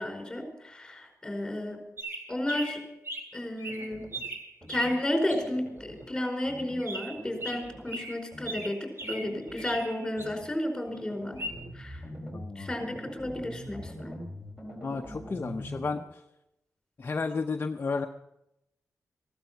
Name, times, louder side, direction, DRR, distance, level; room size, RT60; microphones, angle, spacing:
voice 1, 0.0-1.8 2.3-2.8 3.3-4.1 4.7-11.4 11.7-12.0 12.5-14.2, left 1 dB, 10° left, 3 dB, 4.8 m, -32 dB
sound 1, 2.0-3.3 3.6-5.4 6.8-10.3 11.4-11.5, right 1 dB, 45° right, 3.7 m, -39 dB
sound 2, 3.7-4.3 4.6-4.9 5.3-6.1 6.5-6.8 7.1-8.0 8.3-8.7 9.0-9.8 10.2-10.5 10.9-16.0, equal, 20° right, 4.4 m, -44 dB
voice 2, 12.3-12.7 14.8-16.2 17.0-18.1, left 4 dB, 35° left, 4 dB, 0.8 m, -32 dB
16.0 x 12.0 x 5.8 m, 0.86 s
wide cardioid pair, 100°, 6 cm